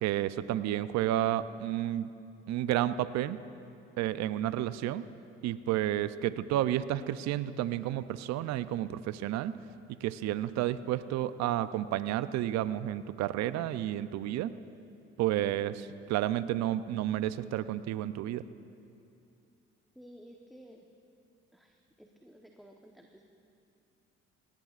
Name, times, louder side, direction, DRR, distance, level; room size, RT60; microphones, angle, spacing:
voice 1, 0.0-2.1 2.5-3.4 4.0-5.1 5.4-9.6 10.0-14.6 15.2-18.4, right 13 dB, 65° right, 15 dB, 0.5 m, -31 dB
voice 2, 20.0-20.8 21.5-23.3, equal, ahead, 1 dB, 1.0 m, -54 dB
18.5 x 17.5 x 2.4 m, 2.6 s
supercardioid pair, 60°, 29 cm